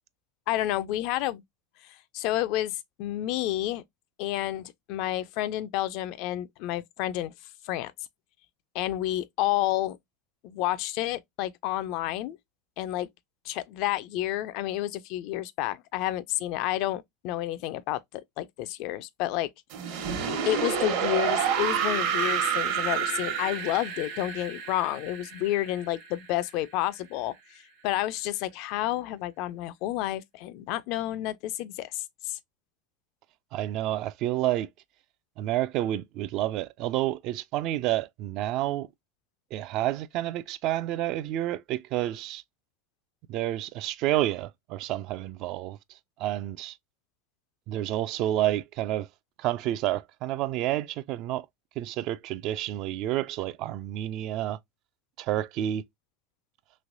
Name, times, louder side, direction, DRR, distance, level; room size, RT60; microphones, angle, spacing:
voice 1, 0.5-1.4 2.1-3.8 4.2-7.3 7.6-7.9 8.7-10.0 10.4-12.4 12.8-13.1 13.5-19.5 20.4-32.4, left 14 dB, 55° left, 0.3 m, -30 dB
sound 1, 19.7-26.6, right 7 dB, 65° right, 1.1 m, -29 dB
voice 2, 33.5-34.7 35.4-38.9 39.5-42.4 43.3-45.8 46.2-46.8 47.7-49.1 49.4-51.5 51.8-54.6 55.2-55.8, right 13 dB, 50° right, 0.3 m, -29 dB
3.1 x 2.9 x 2.5 m
supercardioid pair, 130°, 0 cm